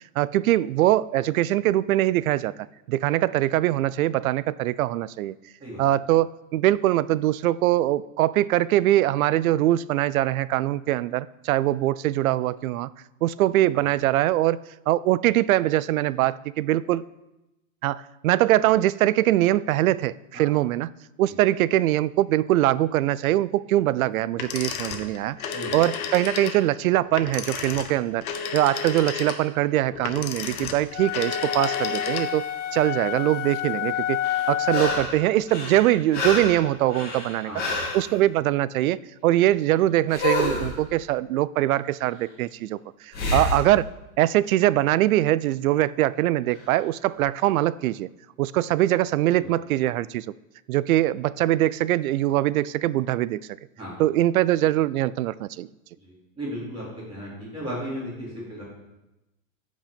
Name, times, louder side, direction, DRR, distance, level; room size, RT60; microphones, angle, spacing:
voice 1, 0.2-2.5 2.9-5.3 5.8-12.9 13.2-14.6 14.9-17.0 17.8-20.9 21.2-25.4 25.7-28.2 28.5-34.2 34.5-37.5 37.9-42.8 43.0-43.9 44.2-48.1 48.4-50.3 50.7-53.4 54.0-55.7, right 14 dB, 80° right, 19 dB, 0.5 m, -22 dB
sound 1, 24.3-32.5, left 6 dB, 80° left, 1.4 m, -32 dB
sound 2, 30.9-35.2, left 11 dB, 60° left, 0.6 m, -29 dB
sound 3, 34.2-35.2 35.5-38.0 40.1-40.7 43.1-43.6 46.6-46.7, left 2 dB, 20° left, 2.3 m, -28 dB
voice 2, 37.4-37.7 43.2-43.3 49.4-49.5 53.8-54.0 56.0-58.6, equal, 15° right, -8 dB, 3.8 m, -35 dB
14.5 x 5.3 x 5.2 m, 0.97 s
supercardioid pair, 175°, 42 cm